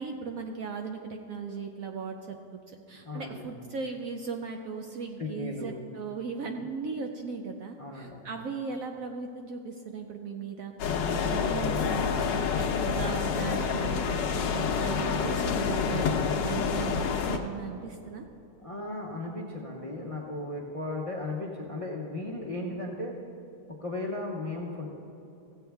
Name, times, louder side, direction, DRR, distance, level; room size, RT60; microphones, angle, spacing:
voice 1, 0.0-2.4 2.7-10.7 11.1-16.1 16.4-18.3, right 5 dB, 65° right, 4 dB, 0.8 m, -37 dB
voice 2, 3.0-3.5 5.2-5.8 7.8-8.2 10.9-11.4 18.6-23.1 23.8-24.9, left 2 dB, 35° left, -1 dB, 0.5 m, -36 dB
sound 1, 10.8-17.4, left 6 dB, 85° left, 1.4 m, -28 dB
15.5 x 8.1 x 3.4 m, 2.9 s
omnidirectional pair, 1.9 m